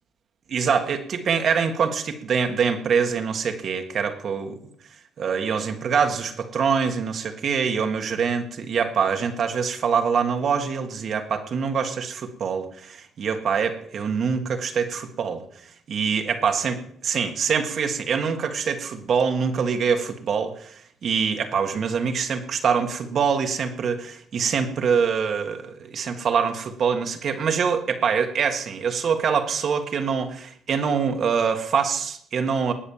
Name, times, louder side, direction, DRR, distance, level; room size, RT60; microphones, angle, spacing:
voice 1, 0.5-4.6 5.2-15.4 15.9-32.7, right 6 dB, 60° right, 6 dB, 1.8 m, -24 dB
19.0 x 6.4 x 7.4 m, 0.64 s
cardioid pair, 90°, 0 cm